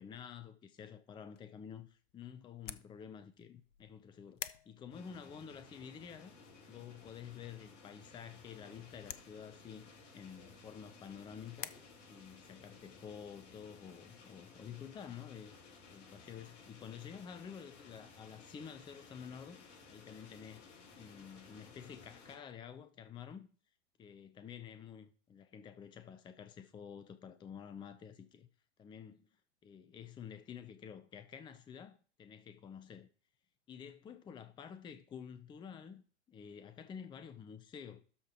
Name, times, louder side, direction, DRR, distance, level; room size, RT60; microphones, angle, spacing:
voice 1, 0.0-6.3 6.7-11.7 12.1-15.6 15.9-20.7 21.0-23.5 24.0-28.5 28.8-29.3 29.6-33.1 33.7-38.0, left 7 dB, 15° left, 0.6 m, -50 dB
sound 1, 1.1-11.7, left 9 dB, 75° left, 0.8 m, -53 dB
sound 2, 4.9-22.4, left 4 dB, 45° left, 3.7 m, -58 dB
12.5 x 4.9 x 4.5 m
figure-of-eight pair, 105°, 36 cm